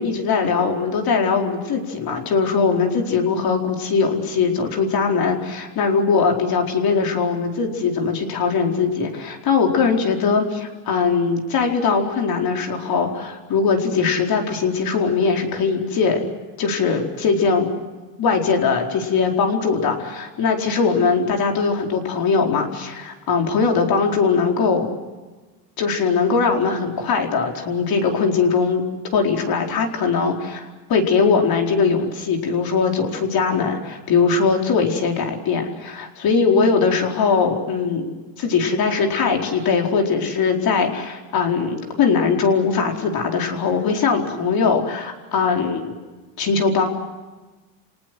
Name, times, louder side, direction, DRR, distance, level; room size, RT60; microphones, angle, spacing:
voice 1, 0.0-16.2 16.6-17.7 18.2-24.9 25.8-28.8 29.1-38.0 38.4-45.9 46.4-46.8, left 5 dB, 45° left, 2 dB, 4.7 m, -20 dB
30.0 x 19.0 x 7.8 m, 1.2 s
cardioid pair, 125°, 49 cm